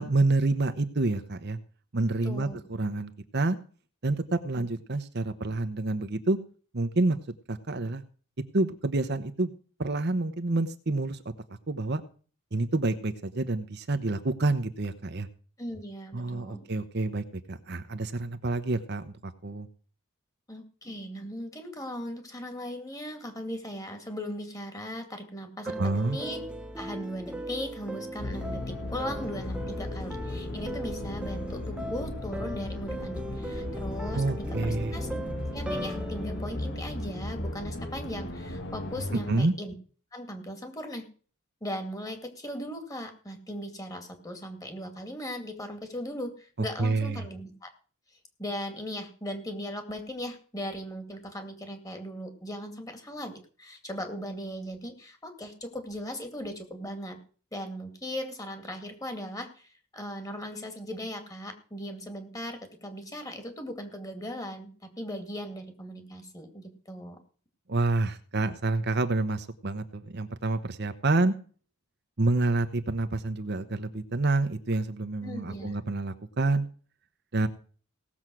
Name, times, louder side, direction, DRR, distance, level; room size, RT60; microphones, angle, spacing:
voice 1, 0.0-1.6 1.9-3.6 4.0-6.4 6.7-7.2 7.5-8.0 8.5-9.5 9.8-11.2 11.7-12.0 12.5-15.3 16.1-19.7 25.8-26.2 34.1-35.0 39.3-39.5 46.8-47.2 67.7-71.3 72.2-76.7 77.3-77.5, right 2 dB, 50° right, 9 dB, 1.0 m, -28 dB
voice 2, 2.2-2.6 15.6-16.7 20.5-26.4 26.8-34.2 34.5-35.2 35.5-39.7 40.1-41.1 41.6-47.7 48.4-57.2 57.5-64.7 65.0-67.2 75.2-75.8, equal, 15° left, 6 dB, 2.3 m, -38 dB
sound 1, 25.7-37.8, right 1 dB, 5° right, 1.3 m, -38 dB
sound 2, 28.2-39.4, left 1 dB, 55° left, 1.7 m, -36 dB
17.5 x 7.3 x 6.2 m, 0.41 s
head